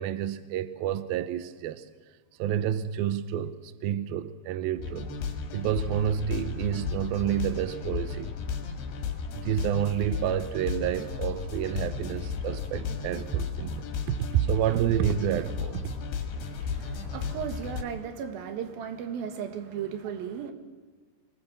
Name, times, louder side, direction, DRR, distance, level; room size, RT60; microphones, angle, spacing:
voice 1, 0.0-1.9 2.4-5.1 5.5-8.4 9.3-15.9, right 10 dB, 85° right, 2.1 m, -29 dB
sound 1, 4.8-17.8, left 5 dB, 65° left, 3.8 m, -34 dB
voice 2, 16.3-20.5, right 8 dB, 60° right, 3.0 m, -36 dB
24.5 x 19.5 x 7.3 m
omnidirectional pair, 5.3 m